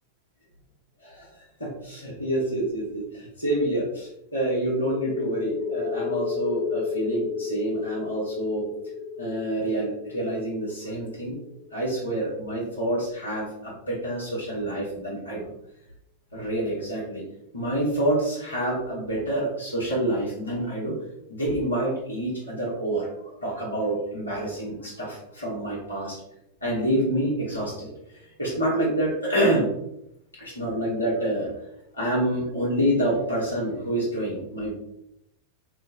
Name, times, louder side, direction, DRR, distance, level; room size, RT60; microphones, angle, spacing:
voice 1, 1.6-8.7 9.2-11.4 11.7-15.4 16.3-17.2 17.5-20.9 21.3-26.2 26.6-27.9 28.2-29.7 30.3-31.5 31.9-34.7, right 1 dB, 80° left, -5 dB, 1.0 m, -27 dB
sound 1, 4.9-12.2, left 6 dB, 55° left, 0.8 m, -32 dB
3.0 x 2.0 x 3.7 m, 0.82 s
figure-of-eight pair, 90°, 0 cm